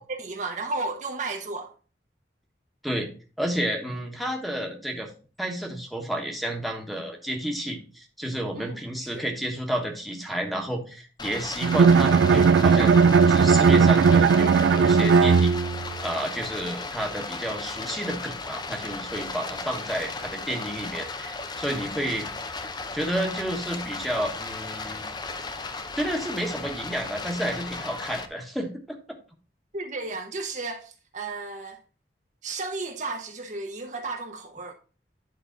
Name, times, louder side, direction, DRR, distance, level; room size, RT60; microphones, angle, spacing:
voice 1, 0.0-1.7 8.5-9.2 29.7-31.8 32.4-34.7, right 3 dB, 45° right, 0.9 m, -34 dB
voice 2, 3.4-5.1 5.4-13.0 13.3-15.5 16.0-22.3 22.9-25.1 25.9-29.0, equal, ahead, 1.2 m, -31 dB
Stream, 11.2-28.3, left 3 dB, 25° left, 0.6 m, -35 dB
Bowed string instrument, 11.6-15.9, right 5 dB, 80° right, 0.3 m, -17 dB
10.5 x 3.9 x 3.9 m
head